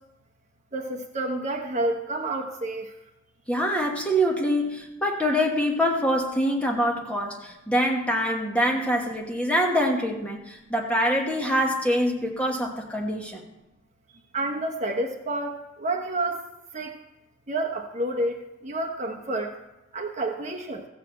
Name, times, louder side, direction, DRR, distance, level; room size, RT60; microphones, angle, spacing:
voice 1, 0.7-2.9 14.3-16.4 16.7-16.9 17.5-19.5 19.9-20.9, right 2 dB, 35° right, 1 dB, 1.1 m, -29 dB
voice 2, 3.5-13.4, equal, 5° left, 0 dB, 1.2 m, -25 dB
14.5 x 4.9 x 7.6 m, 0.93 s
head